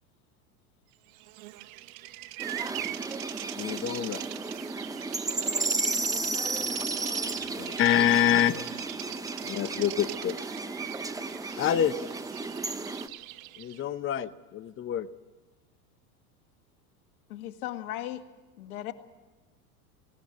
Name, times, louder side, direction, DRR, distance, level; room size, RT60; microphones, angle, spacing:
Bird vocalization bird call bird song, 1.1-13.8, right 17 dB, 60° right, 1.0 m, -42 dB
sound 1, 2.4-13.1, right 3 dB, 10° right, 0.9 m, -33 dB
voice 1, 2.5-2.9 6.5-7.8, left 2 dB, 10° left, 2 dB, 1.7 m, -62 dB
voice 2, 3.6-4.2 7.6-8.6 9.4-10.4 11.6-12.0 13.6-15.1, left 10 dB, 25° left, 12 dB, 0.9 m, -26 dB
voice 3, 17.3-18.2 18.6-18.9, left 13 dB, 70° left, 6 dB, 1.8 m, -37 dB
18.5 x 17.5 x 8.4 m, 1.3 s
hypercardioid pair, 105°, 45 cm